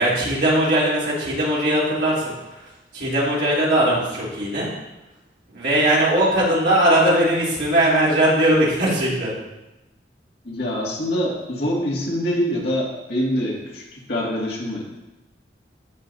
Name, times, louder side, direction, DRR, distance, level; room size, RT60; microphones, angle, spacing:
voice 1, 0.0-4.7 5.5-9.3, right 1 dB, 75° right, -7 dB, 3.3 m, -20 dB
voice 2, 10.4-14.9, equal, 65° left, -4 dB, 2.3 m, -25 dB
15.5 x 5.2 x 2.7 m, 0.99 s
head